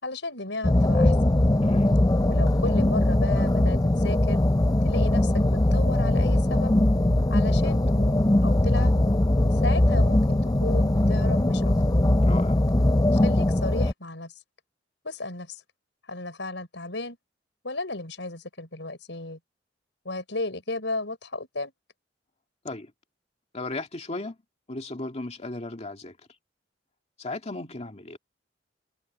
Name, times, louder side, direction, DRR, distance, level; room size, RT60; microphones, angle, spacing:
voice 1, 0.0-1.2 2.3-4.4 4.8-6.7 7.3-8.2 8.4-8.9 9.5-11.7 13.1-14.3 15.0-15.6 16.1-17.2 17.6-19.4 20.0-21.7, left 2 dB, 75° left, 6.3 m, -34 dB
sound 1, 0.6-13.9, left 1 dB, 20° left, 0.6 m, -21 dB
voice 2, 1.6-2.0 12.2-12.6 22.6-22.9 23.5-24.4 24.7-26.2 27.2-28.2, left 2 dB, 35° left, 2.3 m, -35 dB
head